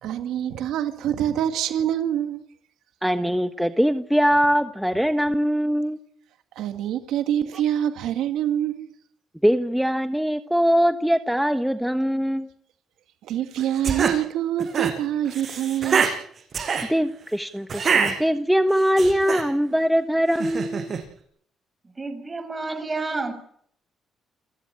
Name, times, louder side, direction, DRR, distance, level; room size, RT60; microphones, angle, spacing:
voice 1, 0.0-2.4 6.6-8.9 13.2-16.0, right 10 dB, 85° right, 1.9 m, -25 dB
voice 2, 3.0-6.0 9.4-12.5 16.9-20.9, equal, ahead, 1.3 m, -22 dB
sound 1, 13.6-14.2 14.6-14.9 15.2-16.1 16.5-16.9 17.7-18.1 18.7-19.4 20.3-21.0, right 6 dB, 50° right, 6.3 m, -24 dB
voice 3, 21.8-23.3, right 3 dB, 25° right, 6.4 m, -30 dB
29.0 x 15.0 x 9.9 m
cardioid pair, 90°, 0 cm